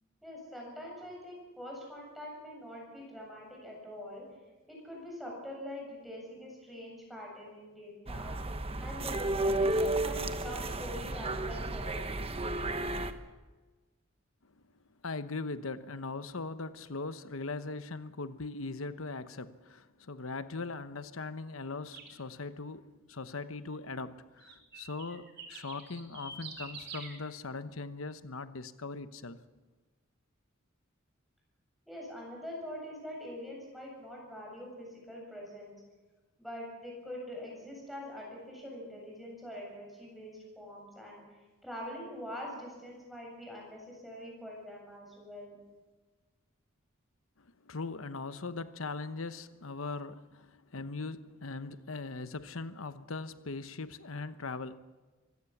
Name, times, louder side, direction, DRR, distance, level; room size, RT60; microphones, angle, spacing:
voice 1, 0.2-4.2 4.7-8.4 8.8-12.3 31.9-35.8 36.4-41.2 41.6-45.6, equal, ahead, 7.8 m, -44 dB
sound 1, 8.1-13.1, right 2 dB, 30° right, 1.1 m, -32 dB
voice 2, 15.0-29.4 47.4-54.8, left 3 dB, 75° left, 1.0 m, -40 dB
sound 2, 21.9-22.1 24.4-27.1, right 5 dB, 55° right, 3.8 m, -46 dB
24.5 x 16.5 x 7.2 m
head